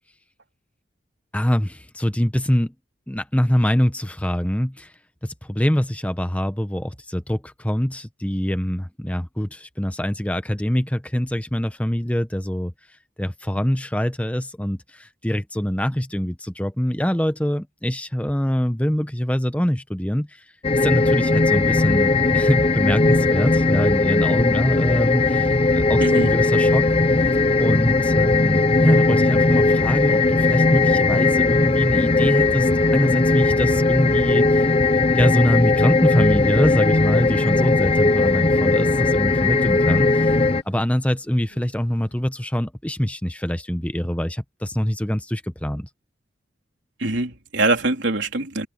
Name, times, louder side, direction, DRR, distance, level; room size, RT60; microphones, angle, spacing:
voice 1, 1.3-2.7 3.1-4.9 5.2-12.7 13.2-20.4 20.7-26.9 27.6-34.7 35.1-40.4 40.6-45.9, equal, 5° left, 1.0 m, -24 dB
sound 1, 20.6-40.6, left 3 dB, 30° left, 0.7 m, -18 dB
voice 2, 26.0-26.3 47.0-48.7, right 2 dB, 80° right, 3.5 m, -23 dB
sound 2, 32.5-42.2, equal, 85° left, 7.8 m, -49 dB
head